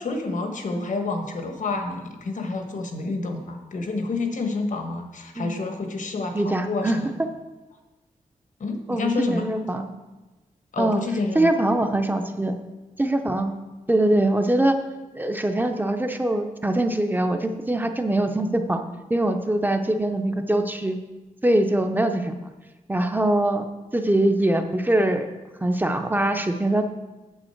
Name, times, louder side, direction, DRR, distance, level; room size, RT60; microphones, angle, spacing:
voice 1, 0.0-7.1 8.6-9.5 10.7-11.5, left 3 dB, 70° left, 5 dB, 1.2 m, -28 dB
voice 2, 6.3-7.0 8.9-9.9 10.8-11.0 11.3-12.5 13.0-13.5 13.9-14.8 15.1-18.8 19.1-21.0 21.4-22.3 22.9-23.7 23.9-25.3 25.6-26.8, right 1 dB, 15° right, 6 dB, 0.6 m, -23 dB
8.9 x 7.1 x 4.5 m, 1.1 s
wide cardioid pair, 145°, 14 cm